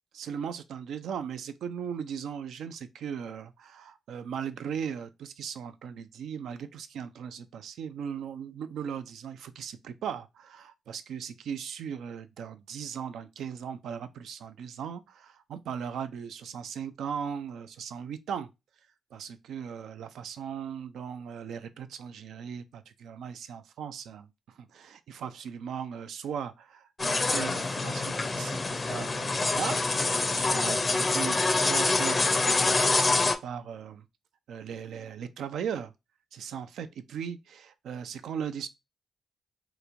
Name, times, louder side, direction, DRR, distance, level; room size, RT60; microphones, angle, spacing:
voice 1, 0.1-18.5 19.1-34.0 34.5-35.9 36.3-38.7, right 7 dB, 75° right, 0.3 m, -38 dB
sound 1, 27.0-33.4, left 3 dB, 35° left, 0.4 m, -26 dB
3.0 x 2.4 x 2.5 m
hypercardioid pair, 45°, 0 cm